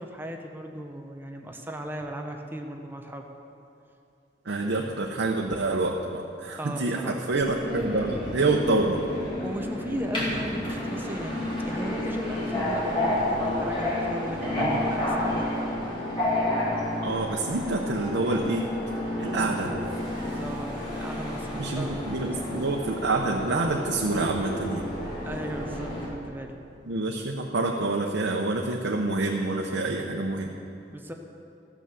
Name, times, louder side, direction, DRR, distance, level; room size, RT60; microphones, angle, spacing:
voice 1, 0.0-3.3 6.6-7.3 9.4-15.5 19.3-19.8 20.2-22.7 25.2-26.6 30.9-31.1, equal, 10° right, 3 dB, 0.7 m, -37 dB
voice 2, 4.4-9.0 14.6-14.9 17.0-18.7 19.2-19.7 21.5-24.8 26.9-30.6, right 2 dB, 85° right, 0 dB, 0.8 m, -27 dB
Subway metro underground, 7.3-26.1, left 1 dB, 30° left, 2.4 m, -30 dB
14.0 x 6.1 x 6.9 m, 2.5 s
head